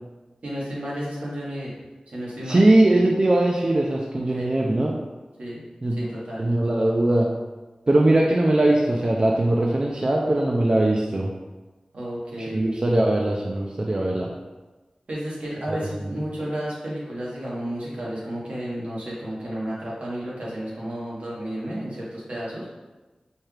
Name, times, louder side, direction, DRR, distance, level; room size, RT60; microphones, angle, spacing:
voice 1, 0.4-1.7 2.1-2.6 4.1-4.5 5.4-5.6 6.0-6.4 11.9-12.6 15.1-22.7, equal, 80° right, -7 dB, 1.2 m, -32 dB
voice 2, 2.5-4.9 5.8-6.1 6.4-7.3 7.9-11.3 12.5-14.3 15.7-16.1, right 1 dB, 40° right, -1 dB, 0.4 m, -20 dB
4.4 x 2.3 x 3.2 m, 1.2 s
wide cardioid pair, 75°, 2 cm